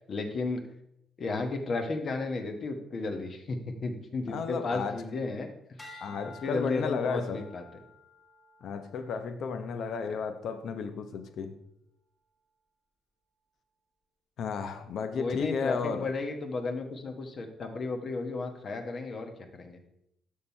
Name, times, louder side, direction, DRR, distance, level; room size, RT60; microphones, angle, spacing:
voice 1, 0.1-0.6 1.2-5.5 5.9-6.0 6.4-7.6 15.2-19.8, left 3 dB, 50° left, 5 dB, 1.1 m, -34 dB
voice 2, 4.3-5.0 6.0-7.4 8.6-11.6 14.4-16.1, left 5 dB, 70° left, 9 dB, 0.7 m, -33 dB
sound 1, 5.8-10.2 10.8-11.2, left 2 dB, 15° left, 1.6 m, -53 dB
6.5 x 5.6 x 4.4 m, 0.77 s
cardioid pair, 90°, 0 cm